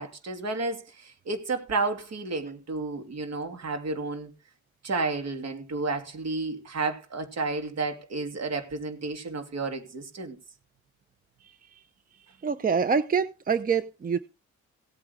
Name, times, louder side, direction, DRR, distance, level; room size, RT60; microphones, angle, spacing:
voice 1, 0.0-4.3 4.8-10.4, right 3 dB, 60° right, 2.9 m, -31 dB
voice 2, 12.4-14.2, right 6 dB, 30° right, 0.7 m, -25 dB
17.0 x 8.8 x 3.6 m
cardioid pair, 90°, 30 cm